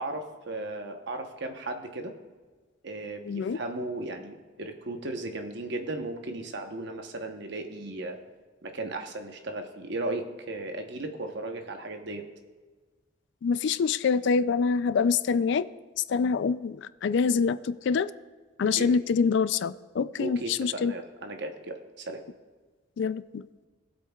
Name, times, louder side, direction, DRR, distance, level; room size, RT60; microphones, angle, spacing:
voice 1, 0.0-2.1 2.8-8.2 8.6-12.2 18.8-18.9 20.2-22.2, right 2 dB, 60° right, 1.0 m, -36 dB
voice 2, 3.2-3.6 13.4-15.7 16.1-18.1 18.6-20.9 23.0-23.7, left 5 dB, 60° left, 0.3 m, -26 dB
19.0 x 8.1 x 2.3 m
head